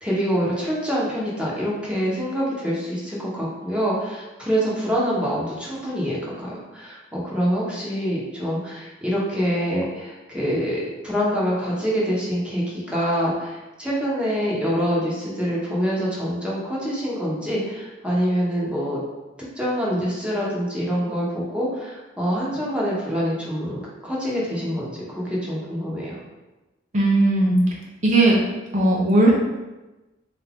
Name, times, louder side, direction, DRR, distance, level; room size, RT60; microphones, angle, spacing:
voice 1, 0.0-19.0 19.6-26.2, equal, 5° right, -6 dB, 1.0 m, -25 dB
voice 2, 26.9-27.6 28.0-28.4 28.7-29.3, right 2 dB, 40° right, -3 dB, 0.6 m, -17 dB
4.1 x 2.4 x 3.4 m, 1.1 s
head